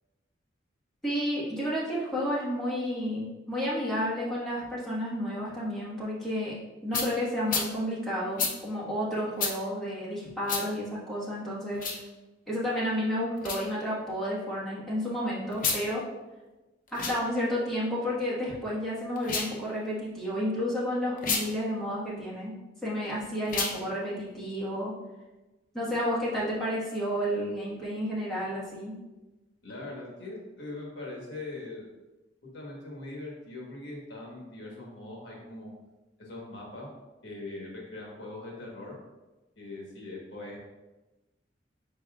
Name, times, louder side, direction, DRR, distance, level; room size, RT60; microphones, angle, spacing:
voice 1, 1.0-6.5 6.8-11.8 12.5-16.0 16.9-22.5 22.8-24.9 25.7-28.9, equal, 5° left, -9 dB, 1.3 m, -31 dB
sound 1, 6.9-7.1 7.5-7.7 8.4-8.5 9.4-9.5 10.5-10.6 11.7-12.0 13.4-13.6 15.5-15.8 16.9-17.2 19.2-19.5 21.2-21.4 23.4-23.8, left 4 dB, 45° left, 0.6 m, -30 dB
voice 2, 29.6-31.9 32.5-35.7 36.2-36.9 37.2-38.9 39.6-40.6, left 2 dB, 70° left, -2 dB, 1.3 m, -41 dB
5.3 x 4.0 x 2.4 m, 1.1 s
head